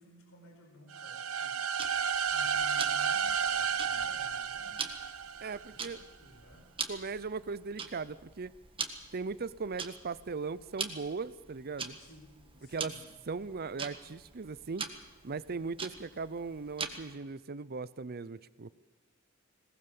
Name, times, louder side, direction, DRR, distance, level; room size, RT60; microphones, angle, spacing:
voice 1, 0.0-1.8 2.1-4.8 5.7-6.6 12.0-13.0, left 1 dB, 75° left, 1 dB, 5.1 m, -55 dB
sound 1, 0.9-5.8, right 7 dB, 80° right, 0.9 m, -32 dB
Tick-tock, 1.8-17.2, right 5 dB, 25° right, 1.7 m, -44 dB
voice 2, 5.4-6.0 6.9-8.5 9.1-12.0 12.7-12.9 13.3-14.8 15.2-18.7, right 4 dB, 45° right, 17 dB, 0.6 m, -38 dB
20.5 x 19.0 x 7.1 m, 1.3 s
head